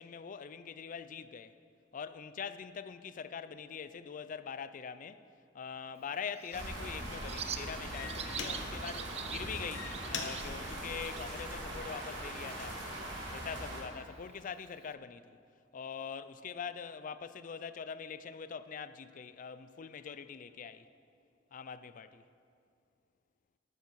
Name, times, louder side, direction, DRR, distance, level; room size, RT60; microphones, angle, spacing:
voice 1, 0.0-1.6 1.9-5.2 5.5-12.8 13.3-15.4 15.7-20.9 21.5-22.2, left 6 dB, 45° left, 0.4 m, -43 dB
sound 1, 5.7-5.9 6.5-6.8 7.5-7.6 7.9-8.9 9.5-11.9 12.4-12.8, left 5 dB, 85° left, 1.2 m, -44 dB
Bird, 6.0-14.9, right 9 dB, 35° right, 0.4 m, -48 dB
sound 2, 6.5-13.8, right 1 dB, 90° right, 2.7 m, -41 dB
12.5 x 9.0 x 4.6 m
head